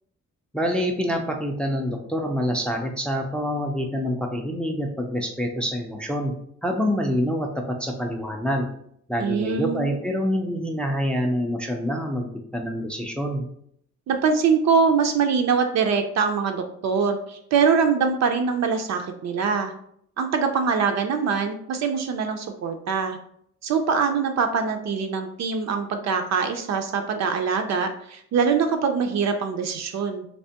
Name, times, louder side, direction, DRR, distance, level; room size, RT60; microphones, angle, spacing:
voice 1, 0.5-6.3 6.6-8.7 9.1-13.5, equal, 5° left, 2 dB, 0.3 m, -26 dB
voice 2, 9.2-10.0 14.1-19.7 20.2-23.2 23.6-30.3, right 5 dB, 65° right, 6 dB, 0.4 m, -23 dB
3.3 x 2.9 x 2.8 m, 0.68 s
wide cardioid pair, 145°, 29 cm